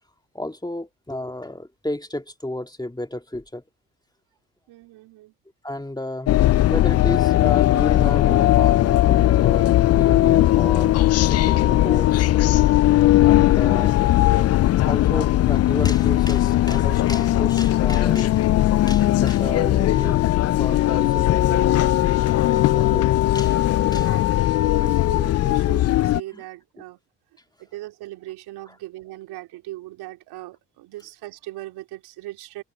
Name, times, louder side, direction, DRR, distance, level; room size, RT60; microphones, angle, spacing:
voice 1, 0.3-3.6 5.6-6.4 6.7-12.3 13.2-14.0 14.3-18.5 18.9-20.2 20.6-21.8 22.7-23.6 23.9-24.1 26.3-26.4, left 1 dB, 10° left, 2.0 m, -32 dB
voice 2, 4.7-5.3 23.8-27.0 27.6-32.6, right 16 dB, 75° right, 3.7 m, -39 dB
sound 1, 6.3-26.2, left 14 dB, 40° left, 0.4 m, -18 dB
hypercardioid pair, 55°, 39 cm